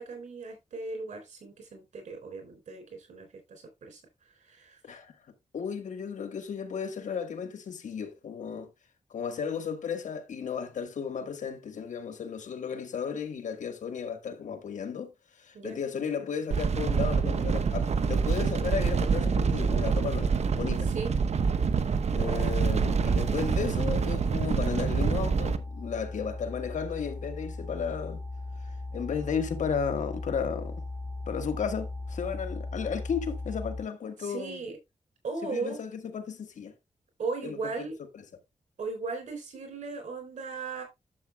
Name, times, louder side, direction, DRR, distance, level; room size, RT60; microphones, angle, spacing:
voice 1, 0.0-4.0 4.5-5.0 15.5-15.8 20.9-21.1 34.2-34.8 35.2-35.8 37.2-38.0 38.8-40.8, right 4 dB, 85° right, 3.7 m, -37 dB
voice 2, 5.5-8.7 9.1-20.9 22.2-28.2 28.6-30.7 31.3-34.6 35.4-36.7 37.4-38.1, left 6 dB, 85° left, 1.4 m, -34 dB
sound 1, 16.5-25.6, right 5 dB, 60° right, 0.8 m, -26 dB
sound 2, 22.3-33.8, left 2 dB, 10° left, 3.0 m, -38 dB
11.5 x 7.2 x 2.2 m
cardioid pair, 70°, 12 cm